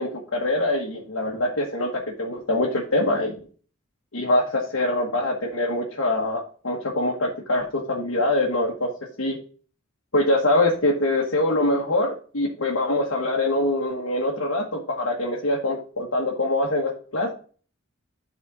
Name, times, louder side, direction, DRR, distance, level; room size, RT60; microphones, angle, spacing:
voice 1, 0.0-3.3 4.1-8.9 9.2-9.4 10.1-17.3, left 1 dB, 80° left, -3 dB, 1.5 m, -24 dB
11.0 x 4.3 x 4.0 m, 0.41 s
head